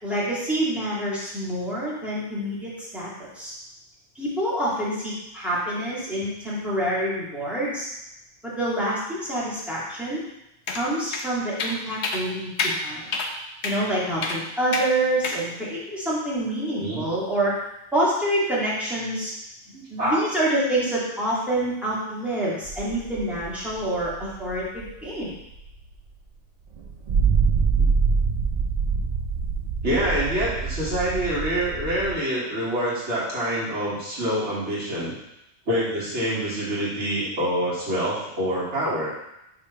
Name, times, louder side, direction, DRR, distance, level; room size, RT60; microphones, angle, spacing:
voice 1, 0.0-3.5 4.2-7.9 8.4-10.2 10.7-13.1 13.6-17.5 17.9-19.3 19.9-25.3, right 1 dB, ahead, -8 dB, 2.0 m, -27 dB
sound 1, 10.7-10.8 11.1-11.2 11.6-11.8 12.0-12.2 12.6-12.8 13.1-13.3 13.6-13.8 14.2-14.4 14.7-14.9 15.2-15.4, left 4 dB, 65° left, 1.0 m, -27 dB
voice 2, 19.7-20.3 27.8-27.9 29.8-35.1 35.7-39.1, equal, 65° right, -8 dB, 2.0 m, -26 dB
sound 2, 22.7-25.9 26.7-32.1, right 5 dB, 85° right, 0.3 m, -25 dB
5.1 x 3.6 x 5.6 m, 0.87 s
omnidirectional pair, 1.2 m